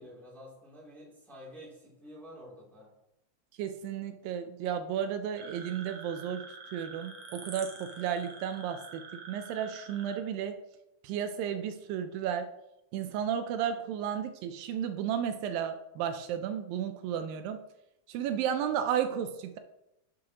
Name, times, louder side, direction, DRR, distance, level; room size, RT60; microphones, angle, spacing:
voice 1, 0.0-2.9, equal, ahead, -6 dB, 2.1 m, -49 dB
voice 2, 3.6-6.4 6.7-9.0 9.3-10.6 11.0-12.5 12.9-17.6 18.1-19.6, right 9 dB, 85° right, 8 dB, 2.3 m, -33 dB
sound 1, 5.4-10.2, right 4 dB, 60° right, 1.6 m, -47 dB
10.5 x 6.3 x 2.9 m, 0.85 s
omnidirectional pair, 4.1 m